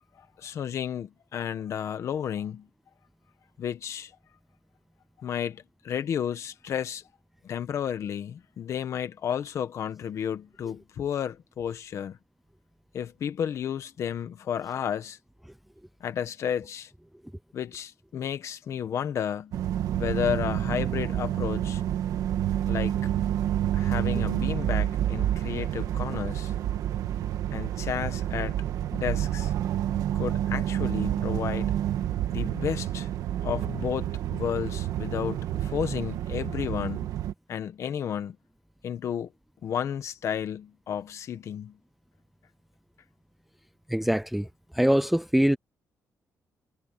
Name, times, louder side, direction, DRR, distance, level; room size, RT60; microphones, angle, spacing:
voice 1, 0.2-2.7 3.6-4.1 5.2-7.0 7.4-12.2 12.9-15.2 16.0-16.9 17.5-19.5 20.0-21.8 22.7-23.0 23.7-26.5 27.5-28.6 28.9-29.5 30.1-31.7 32.3-33.1 33.4-37.1 37.5-38.4 38.8-39.3 39.6-41.8, left 9 dB, 55° left, 1.6 m, -32 dB
sound 1, 19.5-37.3, right 11 dB, 80° right, 1.8 m, -29 dB
voice 2, 43.9-44.5 44.7-45.6, equal, ahead, 0.5 m, -23 dB
cardioid pair, 160°, 6 cm